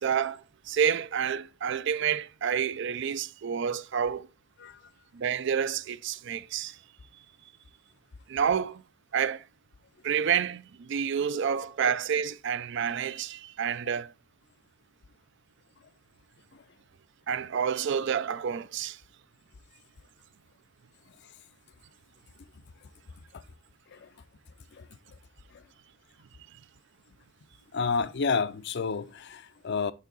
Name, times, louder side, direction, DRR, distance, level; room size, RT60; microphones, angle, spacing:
voice 1, 0.0-4.3 5.1-6.8 8.3-8.8 9.1-9.4 10.0-14.1 17.3-19.0, right 7 dB, 65° right, 0.4 m, -29 dB
voice 2, 27.7-29.9, left 5 dB, 60° left, 0.5 m, -30 dB
8.5 x 3.7 x 3.9 m
head